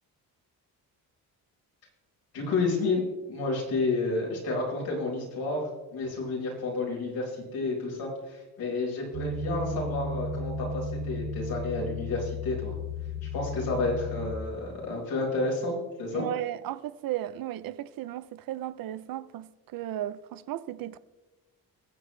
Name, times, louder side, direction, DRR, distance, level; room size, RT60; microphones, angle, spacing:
voice 1, 2.3-5.6 5.9-12.7 13.3-16.2, left 3 dB, 80° left, 4.8 m, -30 dB
sound 1, 9.1-14.4, left 2 dB, 40° right, 1.2 m, -34 dB
voice 2, 16.1-21.0, right 13 dB, 70° right, 0.7 m, -35 dB
22.5 x 7.9 x 3.3 m
cardioid pair, 135°, 36 cm